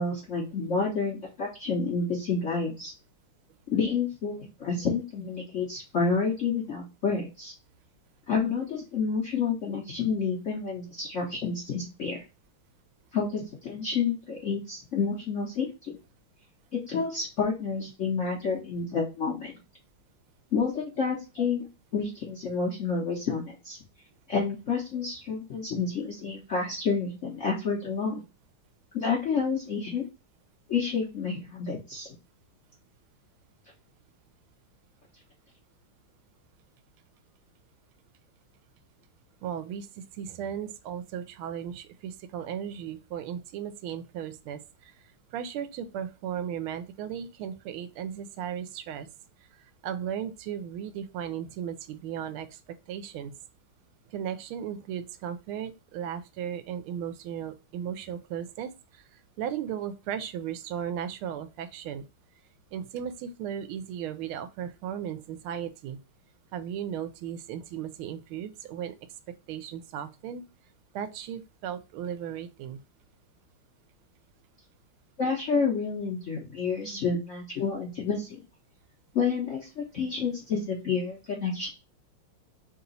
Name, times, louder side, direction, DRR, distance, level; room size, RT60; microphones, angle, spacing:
voice 1, 0.0-2.9 3.7-7.5 8.3-12.2 13.1-15.9 16.7-19.5 20.5-21.6 21.9-23.8 24.3-28.2 28.9-30.1 30.7-32.1 75.2-78.3 79.1-81.7, left 5 dB, 60° left, -3 dB, 0.7 m, -29 dB
voice 2, 39.4-44.9 45.3-49.1 49.8-52.6 52.9-53.3 54.1-59.0 59.4-62.1 62.7-66.0 66.5-68.9 69.5-70.4 70.9-72.8 76.8-77.0, right 9 dB, 80° right, 11 dB, 1.4 m, -36 dB
3.5 x 2.9 x 3.9 m, 0.29 s
omnidirectional pair, 2.3 m